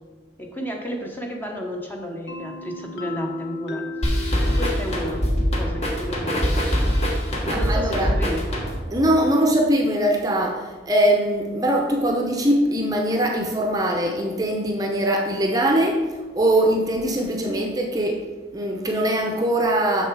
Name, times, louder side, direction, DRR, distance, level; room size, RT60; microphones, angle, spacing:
voice 1, 0.4-3.9 4.6-5.3 5.6-6.7 7.5-8.5 17.5-17.7, equal, 10° left, 1 dB, 0.8 m, -32 dB
sound 1, 2.3-9.9, left 2 dB, 75° left, 0.9 m, -36 dB
sound 2, 4.0-9.0, equal, 35° left, 1.2 m, -23 dB
voice 2, 7.4-8.1 8.9-16.0 16.3-18.2 18.5-20.1, right 1 dB, 20° right, 2 dB, 0.7 m, -21 dB
6.7 x 6.4 x 4.7 m, 1.4 s
head